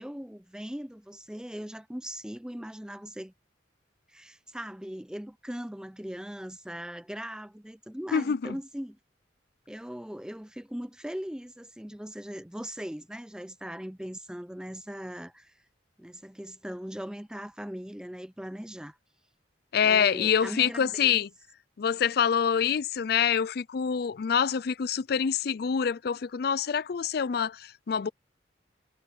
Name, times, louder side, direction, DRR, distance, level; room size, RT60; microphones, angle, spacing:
voice 1, 0.0-3.3 4.1-9.0 9.7-15.5 16.0-19.0 19.8-21.2, equal, 5° right, 0.6 m, -39 dB
voice 2, 8.1-8.6 19.7-21.3 21.8-28.1, left 7 dB, 55° left, 0.4 m, -26 dB
head